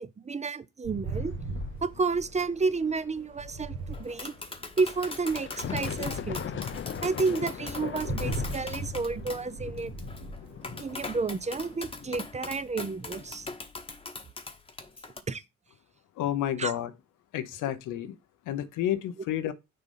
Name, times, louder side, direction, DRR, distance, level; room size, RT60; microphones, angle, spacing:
voice 1, 0.0-1.3 1.8-4.3 4.8-6.4 7.0-9.9 10.6-13.5 15.3-15.4 16.6-16.7, right 4 dB, 25° right, 0.5 m, -31 dB
sound 1, 0.8-4.8 5.5-11.9, right 3 dB, 70° right, 1.5 m, -39 dB
sound 2, 1.0-4.2 4.9-13.5, left 9 dB, 40° left, 0.6 m, -40 dB
Tap, 3.9-15.2, left 3 dB, 20° left, 1.0 m, -41 dB
voice 2, 16.2-16.9 17.3-18.2 18.4-19.5, left 11 dB, 90° left, 0.9 m, -30 dB
6.7 x 3.9 x 5.5 m
cardioid pair, 90°, 30 cm